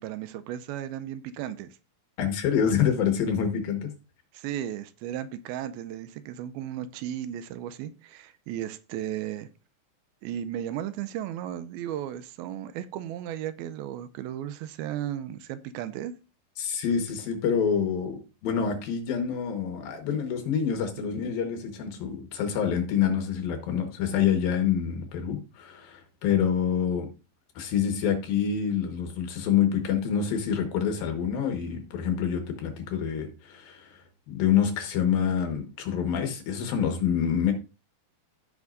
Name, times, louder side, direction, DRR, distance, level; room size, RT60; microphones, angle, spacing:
voice 1, 0.0-1.8 4.3-9.5 10.2-16.1, right 11 dB, 85° right, 2.4 m, -35 dB
voice 2, 2.2-3.9 16.6-27.1 27.6-34.0 34.3-37.5, left 8 dB, 70° left, 3.1 m, -27 dB
15.0 x 5.9 x 2.6 m
omnidirectional pair, 4.4 m